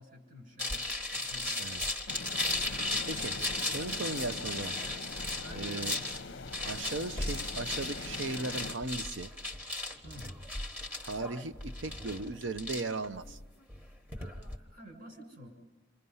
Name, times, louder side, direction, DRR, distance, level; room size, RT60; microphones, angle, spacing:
voice 1, 0.0-1.7 2.8-3.1 3.8-4.3 5.4-6.1 10.0-10.3 14.1-15.5, equal, 50° right, 2 dB, 6.9 m, -50 dB
sound 1, 0.6-14.6, left 2 dB, 10° right, 1.6 m, -36 dB
sound 2, 2.1-8.8, left 3 dB, 60° left, 0.8 m, -43 dB
voice 2, 3.7-4.7 5.5-6.0 6.6-9.3 11.0-13.4, right 3 dB, 65° right, 12 dB, 0.8 m, -37 dB
29.0 x 27.0 x 5.6 m, 1.2 s
head